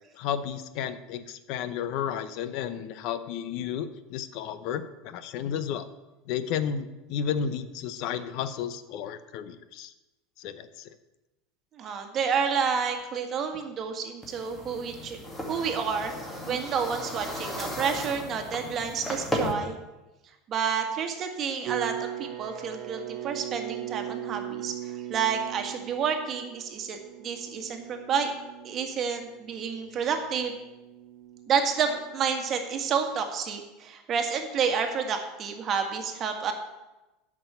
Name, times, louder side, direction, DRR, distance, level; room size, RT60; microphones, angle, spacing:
voice 1, 0.1-5.9 6.3-9.9 10.4-10.9, left 8 dB, 60° left, 12 dB, 0.7 m, -32 dB
voice 2, 11.8-15.2 15.5-16.1 16.5-19.8 20.5-28.3 28.6-30.5 31.5-36.5, right 6 dB, 40° right, 4 dB, 1.7 m, -29 dB
sound 1, 14.2-19.5, left 1 dB, 10° left, 2.2 m, -35 dB
sound 2, 21.6-32.7, right 13 dB, 55° right, 1.0 m, -40 dB
8.6 x 6.2 x 8.1 m, 1.0 s
supercardioid pair, 115°, 0 cm